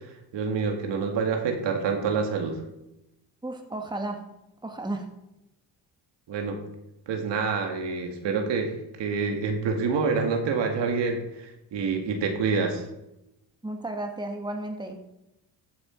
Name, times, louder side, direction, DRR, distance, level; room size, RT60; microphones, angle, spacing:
voice 1, 0.3-2.6 6.3-6.6 7.1-12.9, right 5 dB, 70° right, 3 dB, 2.2 m, -27 dB
voice 2, 3.4-4.3 4.6-5.1 13.6-14.9, right 2 dB, 10° right, 3 dB, 1.8 m, -33 dB
14.5 x 6.5 x 4.5 m, 0.90 s
cardioid pair, 80°, 44 cm